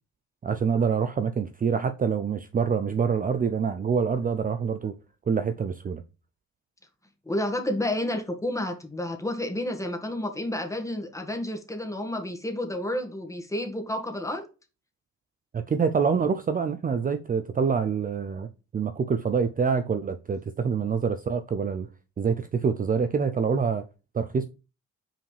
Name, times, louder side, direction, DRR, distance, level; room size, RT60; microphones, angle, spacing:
voice 1, 0.4-4.9 5.3-6.0 15.5-21.9 22.2-23.8 24.1-24.5, right 6 dB, 30° right, 0.5 m, -26 dB
voice 2, 7.2-14.4, left 1 dB, 10° left, 1.7 m, -30 dB
5.8 x 4.8 x 3.3 m
cardioid pair, 90°, 30 cm